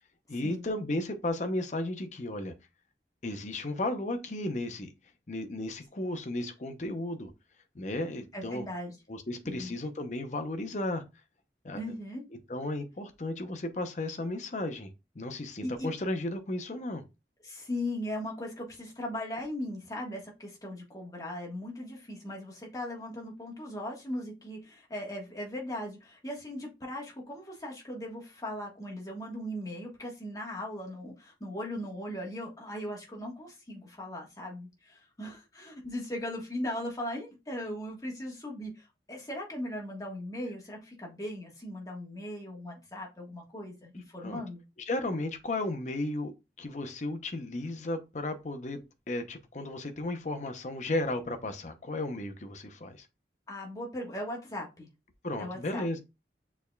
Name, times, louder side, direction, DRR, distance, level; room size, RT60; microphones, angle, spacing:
voice 1, 0.3-2.5 3.2-4.9 5.3-7.3 7.7-8.6 9.1-11.0 11.6-11.8 12.5-17.0 44.2-44.4 44.9-46.3 46.6-48.8 49.1-53.1 55.2-56.0, left 2 dB, 40° left, 0.7 m, -34 dB
voice 2, 8.3-9.0 9.4-9.8 11.7-12.2 15.6-15.9 17.4-44.6 53.5-54.9 55.4-55.9, left 1 dB, 20° left, 1.4 m, -38 dB
6.6 x 3.5 x 2.3 m
head